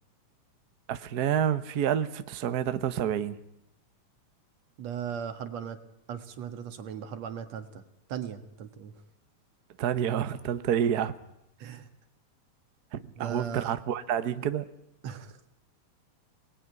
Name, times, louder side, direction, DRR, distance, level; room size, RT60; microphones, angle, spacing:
voice 1, 0.9-3.4 9.8-11.2 12.9-14.7, right 9 dB, 80° right, 11 dB, 0.8 m, -28 dB
voice 2, 4.8-5.8 6.1-7.8 8.1-8.9 11.6-11.9 13.2-13.7 15.0-15.4, right 8 dB, 65° right, 9 dB, 2.7 m, -37 dB
27.5 x 20.0 x 9.5 m, 0.88 s
omnidirectional pair, 3.4 m